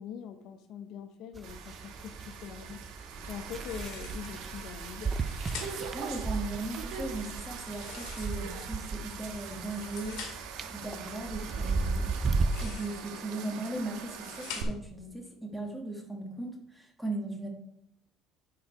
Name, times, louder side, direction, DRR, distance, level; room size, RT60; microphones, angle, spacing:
voice 1, 0.0-2.8 3.3-5.2, left 8 dB, 60° left, 8 dB, 0.8 m, -43 dB
sound 1, 1.3-12.7, right 4 dB, 20° right, 0.4 m, -35 dB
sound 2, 1.4-14.6, right 6 dB, 80° right, 1.2 m, -43 dB
sound 3, 3.5-4.4 5.0-6.0 7.6-8.7 9.5-10.6 12.3-13.1 13.7-15.0, left 6 dB, 80° left, 2.2 m, -46 dB
voice 2, 5.9-12.1 12.6-17.5, right 2 dB, 5° right, 2 dB, 1.4 m, -38 dB
9.7 x 4.8 x 4.7 m, 0.76 s
cardioid pair, 160°, 0 cm